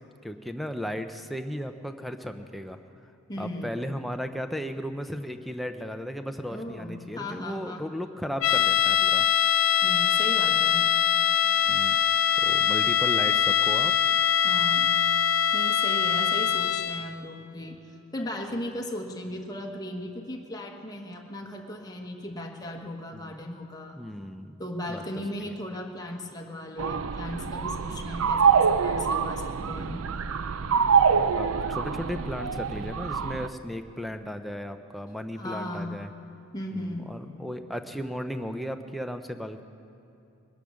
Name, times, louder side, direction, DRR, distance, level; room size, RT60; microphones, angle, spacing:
voice 1, 0.2-2.8 3.4-9.3 11.7-12.0 12.4-13.9 23.1-23.4 24.0-24.6 24.9-25.0 28.1-28.3 29.6-29.7 31.4-36.1 36.7-39.6, equal, ahead, 6 dB, 0.6 m, -35 dB
voice 2, 3.3-3.9 6.5-7.8 9.8-10.9 14.4-15.0 15.5-24.0 24.6-30.1 35.3-36.0 36.5-37.1, left 1 dB, 20° left, 0 dB, 1.3 m, -37 dB
sound 1, 8.4-17.1, left 9 dB, 65° left, 0.5 m, -23 dB
sound 2, 26.8-33.5, right 6 dB, 70° right, 0.5 m, -25 dB
21.5 x 10.5 x 6.4 m, 2.8 s
head